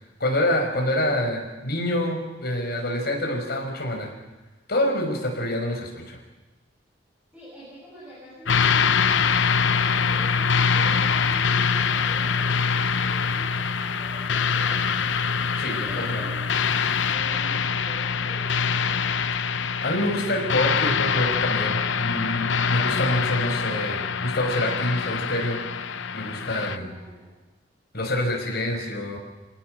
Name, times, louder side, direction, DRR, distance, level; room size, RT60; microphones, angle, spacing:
voice 1, 0.2-4.1 4.7-6.2 15.6-16.2 19.8-25.6 26.1-26.9 27.9-29.2, left 1 dB, 55° left, 2 dB, 5.5 m, -26 dB
voice 2, 7.3-14.8 15.6-16.6 17.1-19.2 26.4-27.4, equal, 5° right, -9 dB, 7.9 m, -45 dB
sound 1, 8.5-26.8, left 6 dB, 70° left, 0.8 m, -24 dB
27.5 x 18.0 x 6.6 m, 1.1 s
head